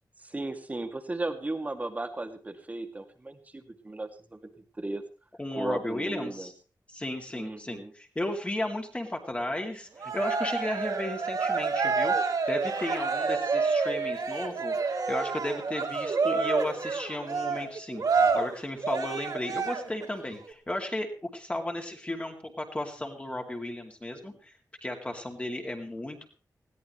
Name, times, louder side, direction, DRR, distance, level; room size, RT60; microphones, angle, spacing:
voice 1, 0.2-5.0 5.6-6.5 7.3-7.9, right 2 dB, 20° right, 6 dB, 2.0 m, -36 dB
voice 2, 5.4-6.5 6.9-24.5 24.8-26.2, left 1 dB, 20° left, 2 dB, 2.6 m, -34 dB
Cheering, 10.0-20.1, right 4 dB, 65° right, 2.9 m, -28 dB
20.5 x 16.5 x 3.2 m, 0.33 s
wide cardioid pair, 155°, 7 cm